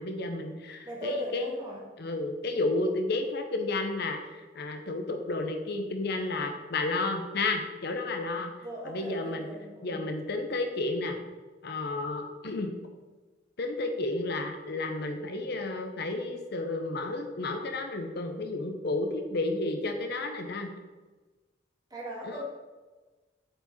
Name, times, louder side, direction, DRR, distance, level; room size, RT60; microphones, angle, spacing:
voice 1, 0.0-1.5 2.0-8.5 8.8-9.5 9.8-11.2 11.6-12.7 13.6-20.7 22.2-22.4, left 2 dB, 60° left, 5 dB, 0.7 m, -32 dB
voice 2, 0.8-1.8 8.6-10.1 21.9-22.4, right 1 dB, 20° right, -4 dB, 1.8 m, -38 dB
7.7 x 5.0 x 4.1 m, 1.3 s
head